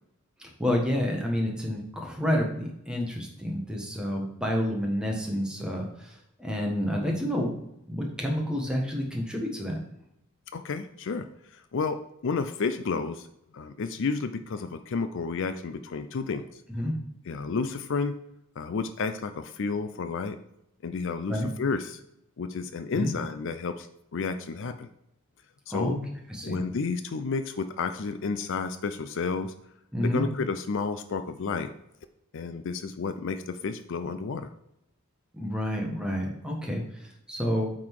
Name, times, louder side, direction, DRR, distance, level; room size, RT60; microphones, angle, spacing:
voice 1, 0.4-7.5 7.9-9.8 16.7-16.9 21.3-21.5 22.9-23.1 25.7-26.0 26.3-26.6 29.9-30.3 35.3-37.7, equal, 5° right, 0 dB, 1.3 m, -29 dB
voice 2, 10.5-13.3 13.5-16.6 17.3-18.2 18.6-20.4 20.8-22.0 22.4-23.9 24.1-24.9 25.7-26.0 26.4-29.5 30.0-31.7 32.3-34.5, left 4 dB, 60° left, 10 dB, 0.5 m, -31 dB
8.6 x 3.9 x 4.6 m, 0.81 s
head